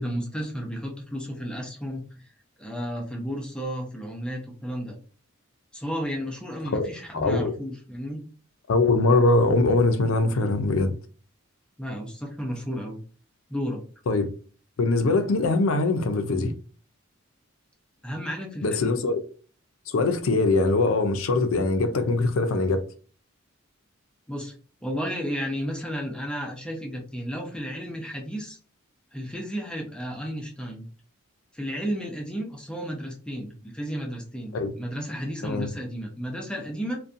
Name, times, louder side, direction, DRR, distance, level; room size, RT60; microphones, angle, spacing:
voice 1, 0.0-2.3 2.6-5.0 5.7-8.2 11.8-13.0 13.5-13.8 18.0-19.0 24.3-24.5 24.8-28.6 29.1-30.9 31.5-37.0, equal, 5° left, 0.4 m, -33 dB
voice 2, 6.7-7.5 8.7-10.9 14.1-14.3 14.8-16.5 18.6-19.2 19.9-22.8 34.5-34.7 35.4-35.7, left 3 dB, 75° left, 0.4 m, -22 dB
2.5 x 2.2 x 2.5 m
head